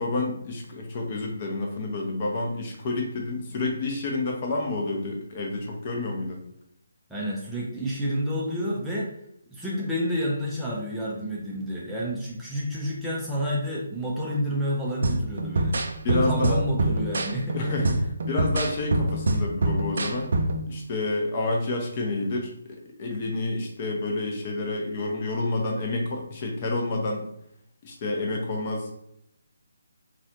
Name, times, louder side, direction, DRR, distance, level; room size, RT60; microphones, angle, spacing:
voice 1, 0.0-6.4 16.0-16.6 17.5-20.3 20.7-27.2 27.8-28.9, left 2 dB, 30° left, 1 dB, 0.7 m, -29 dB
voice 2, 7.1-9.1 9.5-15.8 16.0-17.6, equal, 5° right, -7 dB, 0.5 m, -29 dB
sound 1, 15.0-20.7, right 1 dB, 55° right, 0.4 m, -26 dB
4.1 x 2.4 x 2.8 m, 0.73 s
figure-of-eight pair, 145°, 0 cm